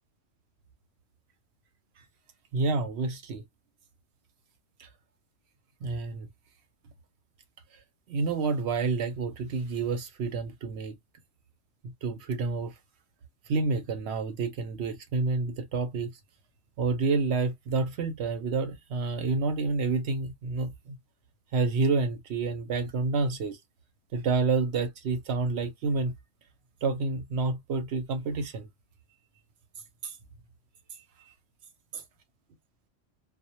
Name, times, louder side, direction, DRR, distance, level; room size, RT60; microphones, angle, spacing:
voice 1, 2.5-3.4 4.8-4.9 5.8-6.3 8.1-10.9 12.0-12.7 13.5-16.1 16.8-21.0 21.5-23.6 24.1-26.1 26.8-28.7 30.0-30.2 30.9-31.3 31.9-32.0, right 4 dB, 70° right, 0.8 m, -29 dB
2.1 x 2.1 x 2.8 m
omnidirectional pair, 1.3 m